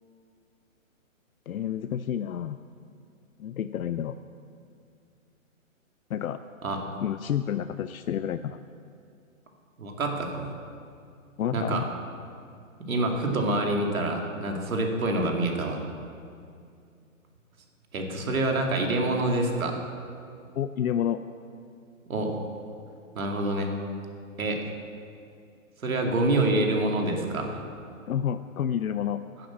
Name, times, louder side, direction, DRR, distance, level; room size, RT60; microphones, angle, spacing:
voice 1, 1.5-2.6 3.4-4.2 6.1-6.4 7.0-8.6 11.4-11.9 20.6-21.2 28.1-29.2, left 9 dB, 85° left, 10 dB, 0.6 m, -29 dB
voice 2, 9.8-10.5 11.5-11.8 12.9-15.9 17.9-19.8 22.1-22.4 23.1-23.7 24.4-24.6 25.8-27.6, right 2 dB, 80° right, 2 dB, 2.5 m, -26 dB
10.5 x 10.0 x 7.4 m, 2.4 s
hypercardioid pair, 160°, 41 cm